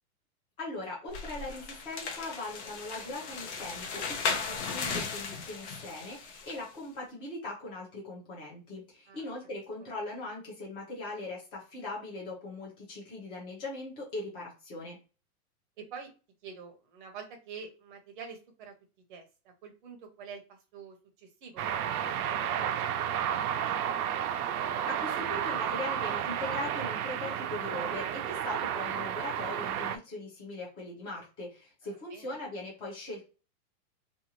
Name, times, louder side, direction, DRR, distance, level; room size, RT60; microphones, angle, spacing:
voice 1, 0.6-15.0 24.9-33.2, left 2 dB, 10° left, -4 dB, 0.6 m, -40 dB
sound 1, 1.1-6.6, left 5 dB, 50° left, 0.7 m, -36 dB
voice 2, 15.8-16.1 16.4-18.7 19.1-24.1 31.8-32.3, right 5 dB, 35° right, 4 dB, 0.7 m, -47 dB
sound 2, 21.6-30.0, right 9 dB, 80° right, 0.5 m, -32 dB
2.6 x 2.4 x 2.9 m, 0.33 s
supercardioid pair, 170°, 44 cm